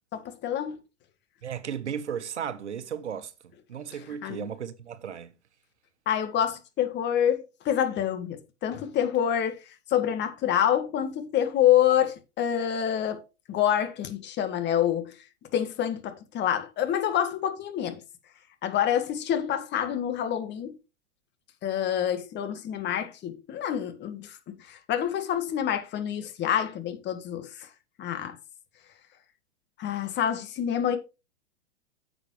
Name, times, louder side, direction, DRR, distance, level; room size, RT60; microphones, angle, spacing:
voice 1, 0.1-0.8 4.2-4.4 6.1-9.6 9.9-13.2 13.5-15.2 15.5-18.0 18.6-20.8 21.6-27.7 28.0-28.4 29.8-31.0, left 10 dB, 30° left, 2.1 m, -27 dB
voice 2, 1.4-3.3 3.7-5.3, right 8 dB, 85° right, 1.2 m, -35 dB
9.9 x 7.6 x 3.3 m
hypercardioid pair, 115°, 34 cm